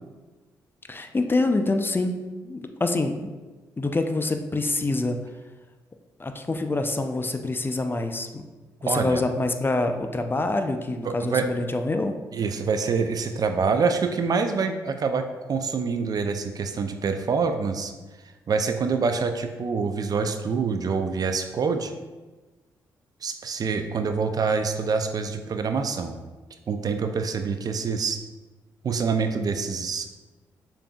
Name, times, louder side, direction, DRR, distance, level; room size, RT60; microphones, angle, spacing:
voice 1, 0.9-3.3 3.8-5.2 6.2-8.4 8.8-12.1, left 2 dB, 25° left, 6 dB, 0.4 m, -26 dB
voice 2, 8.9-9.2 11.0-11.5 12.3-17.9 18.5-21.9 23.2-26.2 26.7-28.2 28.8-30.1, right 5 dB, 50° right, 7 dB, 0.4 m, -26 dB
6.7 x 2.6 x 2.3 m, 1.2 s
hypercardioid pair, 45°, 8 cm